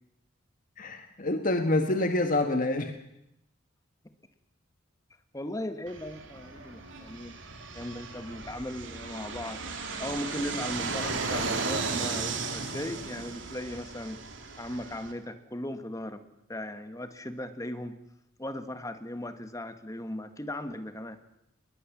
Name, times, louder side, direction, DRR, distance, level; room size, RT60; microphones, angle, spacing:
voice 1, 0.8-3.0, left 2 dB, 45° left, 6 dB, 1.7 m, -27 dB
voice 2, 5.3-7.4 7.7-14.2 14.6-16.2 16.5-18.0 18.4-21.2, left 1 dB, 15° left, 10 dB, 1.5 m, -37 dB
Fixed-wing aircraft airplane, 5.9-15.1, right 4 dB, 75° right, 3.1 m, -35 dB
21.0 x 20.5 x 7.4 m, 0.81 s
head